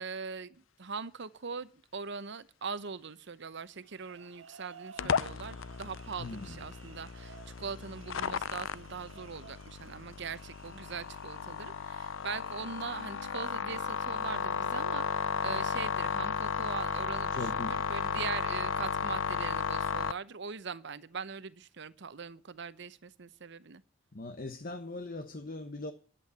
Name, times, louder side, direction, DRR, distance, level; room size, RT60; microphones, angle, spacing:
voice 1, 0.0-23.8, right 5 dB, 60° right, 0.9 m, -41 dB
sound 1, 3.7-14.8, right 6 dB, 80° right, 1.7 m, -57 dB
sound 2, 5.0-20.1, left 6 dB, 80° left, 0.6 m, -34 dB
voice 2, 6.2-6.6 17.3-17.7 24.1-25.9, left 2 dB, 45° left, 1.1 m, -40 dB
11.5 x 8.6 x 8.2 m
head